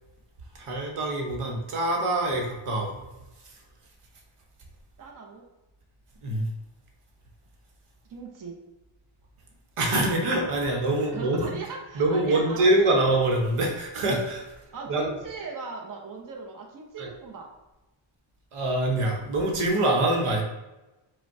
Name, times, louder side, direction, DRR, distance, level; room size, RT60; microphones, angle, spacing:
voice 1, 0.5-3.1 6.2-6.4 9.8-11.5 11.9-14.5 14.9-15.1 17.0-17.1 18.5-20.4, right 2 dB, 85° right, 1 dB, 1.0 m, -24 dB
voice 2, 5.0-5.4 8.1-8.6 11.0-12.7 14.7-17.5, right 4 dB, 40° right, 0 dB, 0.8 m, -39 dB
5.0 x 2.3 x 4.6 m, 1.0 s
wide cardioid pair, 115°, 50 cm